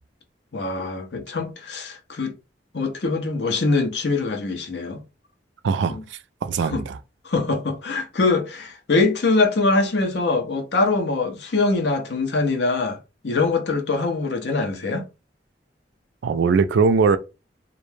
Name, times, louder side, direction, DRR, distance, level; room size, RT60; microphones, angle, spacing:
voice 1, 0.5-2.3 2.7-5.0 5.9-6.0 6.6-6.8 7.2-13.0 13.2-15.1, left 3 dB, 70° left, 0.6 m, -23 dB
voice 2, 5.6-6.0 6.4-7.0 16.2-17.2, right 5 dB, 80° right, 0.3 m, -20 dB
2.4 x 2.1 x 3.1 m
head